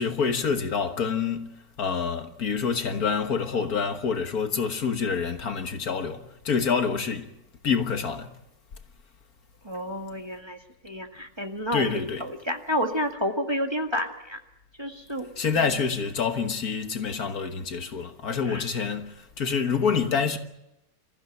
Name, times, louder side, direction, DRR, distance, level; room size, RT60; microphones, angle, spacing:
voice 1, 0.0-1.5 1.8-7.3 7.6-8.4 11.7-12.2 15.4-20.4, left 6 dB, 60° left, 1.8 m, -27 dB
voice 2, 9.6-10.6 10.8-11.9 12.2-14.4 14.8-15.3 15.5-15.6 18.5-18.7, equal, 15° right, 1.8 m, -30 dB
26.5 x 15.0 x 9.0 m
omnidirectional pair, 1.8 m